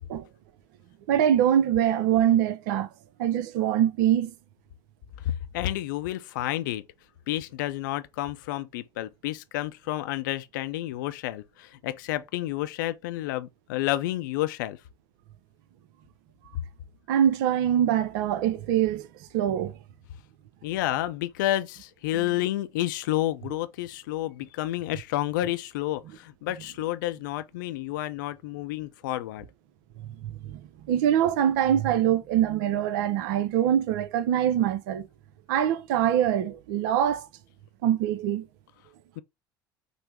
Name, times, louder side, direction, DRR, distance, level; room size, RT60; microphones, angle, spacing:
voice 1, 1.1-2.9 3.2-4.3 17.1-19.1 19.3-19.7 30.2-30.6 30.9-35.1 35.5-37.3 37.8-38.4, right 10 dB, 60° right, 0.5 m, -24 dB
voice 2, 5.2-6.8 7.3-14.8 20.6-29.5 39.2-39.3, left 15 dB, 65° left, 0.5 m, -30 dB
5.3 x 2.0 x 4.6 m
figure-of-eight pair, 65°, 11 cm